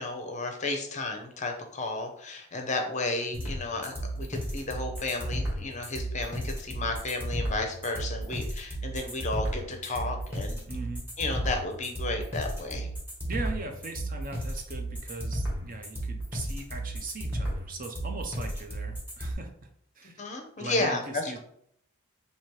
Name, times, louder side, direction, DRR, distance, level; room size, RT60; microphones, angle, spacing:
voice 1, 0.0-10.6 11.2-12.9 20.2-21.4, left 2 dB, 30° left, 4 dB, 0.6 m, -33 dB
sound 1, 3.3-19.3, right 1 dB, 10° right, 1.0 m, -33 dB
voice 2, 10.7-11.1 13.3-19.5 20.0-20.2 20.6-21.0 21.3-21.4, right 3 dB, 40° right, 4 dB, 0.5 m, -39 dB
3.0 x 2.8 x 4.5 m, 0.68 s
head